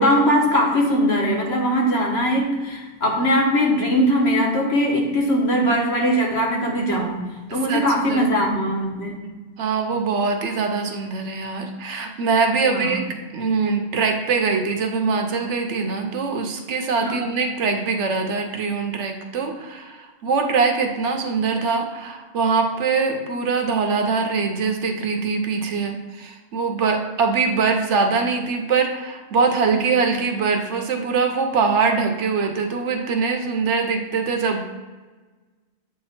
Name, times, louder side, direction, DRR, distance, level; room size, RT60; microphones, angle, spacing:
voice 1, 0.0-7.2 7.5-9.2 12.7-13.0 17.0-17.4, equal, 65° left, 0 dB, 1.3 m, -20 dB
voice 2, 7.5-8.3 9.6-13.0 13.3-34.7, right 4 dB, 75° right, 4 dB, 1.1 m, -23 dB
8.1 x 2.9 x 4.2 m, 1.3 s
omnidirectional pair, 1.2 m